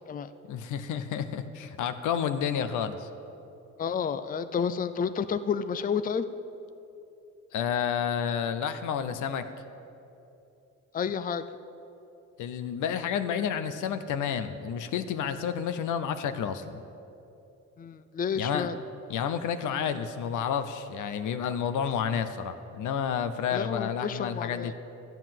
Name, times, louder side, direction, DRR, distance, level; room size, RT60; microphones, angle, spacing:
voice 1, 0.5-3.1 7.5-9.5 12.4-16.8 18.4-18.7 19.1-24.7, left 8 dB, 80° left, 10 dB, 0.8 m, -30 dB
voice 2, 3.8-6.3 10.9-11.4 17.8-18.8 23.5-24.7, left 6 dB, 30° left, 11 dB, 0.5 m, -30 dB
12.5 x 8.0 x 7.5 m, 2.8 s
cardioid pair, 90°, 30 cm